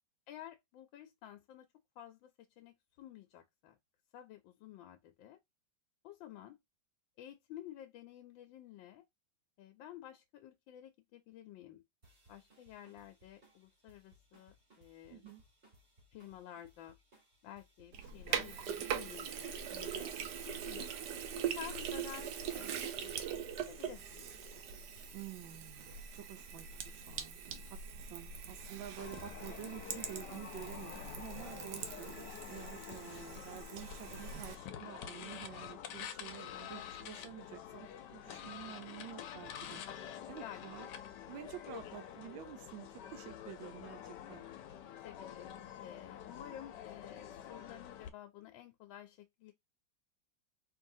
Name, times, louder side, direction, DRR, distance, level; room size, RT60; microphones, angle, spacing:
voice 1, 0.3-1.7 2.0-3.8 4.1-5.4 6.0-6.6 7.2-9.1 9.6-11.8 12.3-15.3 16.1-17.0 17.4-20.1 20.5-20.9 21.3-24.6 40.4-40.8 45.0-45.6 45.8-49.5, left 11 dB, 85° left, 1.4 m, -52 dB
sound 1, 12.0-26.8, right 1 dB, 35° right, 2.9 m, -66 dB
voice 2, 15.1-15.4 25.1-27.4 27.7-39.8 40.3-40.9 41.3-44.4, right 12 dB, 85° right, 1.4 m, -50 dB
Sink (filling or washing), 17.9-34.6, right 8 dB, 70° right, 1.2 m, -42 dB
sound 2, 29.0-48.1, left 9 dB, 70° left, 1.2 m, -48 dB
4.7 x 3.1 x 2.6 m
omnidirectional pair, 2.0 m